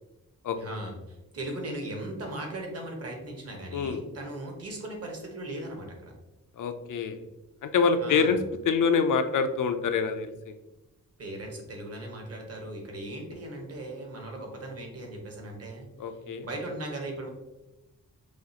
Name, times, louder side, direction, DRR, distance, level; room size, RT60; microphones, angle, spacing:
voice 1, 0.6-6.1 8.0-8.4 11.2-16.2 16.4-17.3, right 1 dB, 45° right, 1 dB, 1.2 m, -38 dB
voice 2, 6.6-7.2 7.6-8.4 8.7-10.6 16.0-16.5, left 5 dB, 65° left, 8 dB, 0.5 m, -26 dB
6.3 x 2.4 x 2.8 m, 0.99 s
wide cardioid pair, 125°, 34 cm